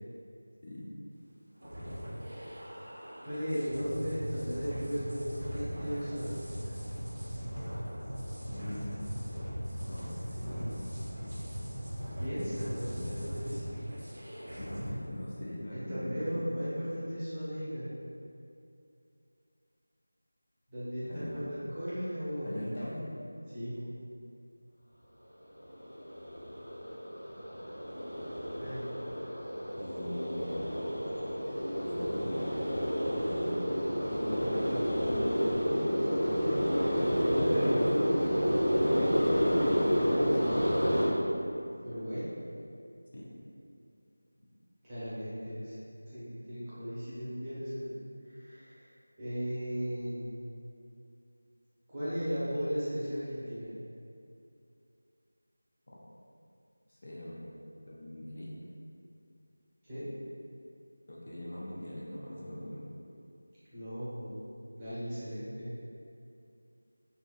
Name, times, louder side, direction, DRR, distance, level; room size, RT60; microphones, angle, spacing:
sound 1, 1.6-14.9, equal, 55° right, 0.5 m, -39 dB
voice 1, 3.2-6.3 12.1-13.6 15.7-17.9 20.7-22.6 23.5-23.9 28.5-28.9 37.2-38.0 41.8-42.3 44.8-45.8 46.1-48.9 49.2-50.4 51.9-53.7 59.8-60.1 63.7-64.3 64.8-65.7, equal, 15° right, -14 dB, 0.7 m, -36 dB
voice 2, 8.4-9.0 9.9-10.8 12.7-13.3 14.6-16.3 21.0-21.5 22.4-23.1 29.8-30.7 31.8-32.4 33.1-33.5 34.1-35.9 36.3-38.2 38.7-40.8 43.1-43.3 44.4-44.5 55.9-56.0 56.9-57.6 57.9-58.5 61.1-62.9, left 1 dB, 50° left, -6 dB, 0.4 m, -41 dB
sound 2, 25.6-41.1, equal, 70° left, 0.9 m, -30 dB
2.5 x 2.2 x 2.3 m, 2.6 s
figure-of-eight pair, 170°, 0 cm